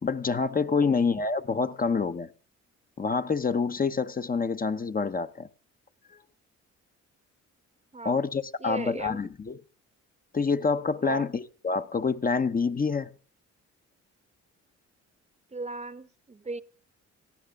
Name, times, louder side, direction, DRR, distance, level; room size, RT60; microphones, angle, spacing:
voice 1, 0.0-2.3 3.0-5.5 6.1-6.2 8.0-9.6 10.3-13.1, left 5 dB, 30° left, 1.0 m, -27 dB
voice 2, 0.8-1.2 7.9-8.2 8.6-9.2 11.0-11.3 15.5-16.6, right 3 dB, 20° right, 0.9 m, -37 dB
18.5 x 13.0 x 3.7 m
cardioid pair, 90°, 30 cm